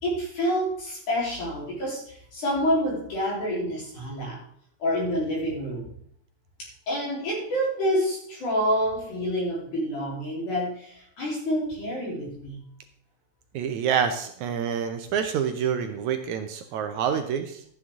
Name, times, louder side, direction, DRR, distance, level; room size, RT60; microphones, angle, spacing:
voice 1, 0.0-4.4 4.8-5.9 6.6-12.6, equal, 60° left, -4 dB, 5.2 m, -28 dB
voice 2, 13.5-17.6, right 8 dB, 75° right, 7 dB, 1.9 m, -27 dB
13.0 x 9.3 x 3.7 m, 0.66 s
omnidirectional pair, 3.9 m